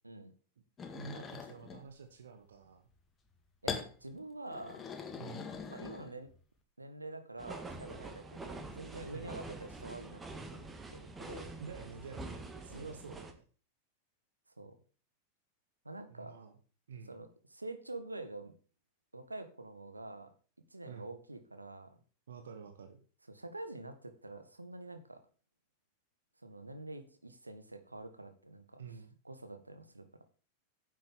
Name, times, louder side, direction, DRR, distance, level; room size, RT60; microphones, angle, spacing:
sound 1, 0.8-1.8 3.7-3.9 4.5-6.4, left 6 dB, 20° left, 2.1 m, -42 dB
voice 1, 0.9-2.9 5.2-5.6 9.1-9.3 11.6-13.4 16.1-16.6 16.9-17.1 20.8-21.1 22.3-23.0 28.8-29.2, right 5 dB, 65° right, 7 dB, 1.3 m, -49 dB
voice 2, 3.6-4.8 5.7-6.3 6.8-10.2 10.5-11.5 12.7-12.9 14.6-14.7 15.8-16.3 17.0-18.5 19.1-20.3 20.7-22.0 23.3-25.2 26.4-30.2, right 2 dB, 85° right, 9 dB, 1.6 m, -47 dB
sound 2, 7.4-13.3, right 2 dB, 15° right, 1.9 m, -46 dB
10.0 x 7.7 x 7.0 m, 0.39 s
figure-of-eight pair, 90°, 0 cm